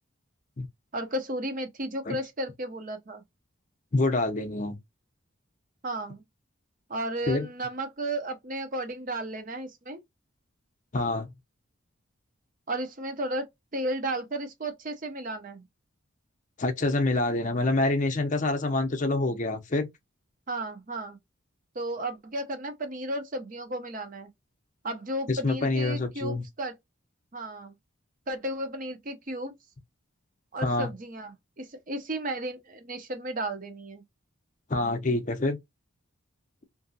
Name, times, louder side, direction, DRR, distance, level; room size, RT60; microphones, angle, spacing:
voice 1, 0.9-3.2 5.8-6.2 6.9-10.0 12.7-13.5 13.7-15.6 20.5-21.2 21.7-24.3 24.8-26.7 27.3-27.7 28.3-29.5 30.5-34.0, right 1 dB, 40° right, 0.6 m, -34 dB
voice 2, 3.9-4.8 7.3-7.5 10.9-11.3 16.6-19.9 25.3-26.4 30.6-30.9 34.7-35.6, left 2 dB, 35° left, 0.6 m, -26 dB
2.8 x 2.6 x 2.6 m
head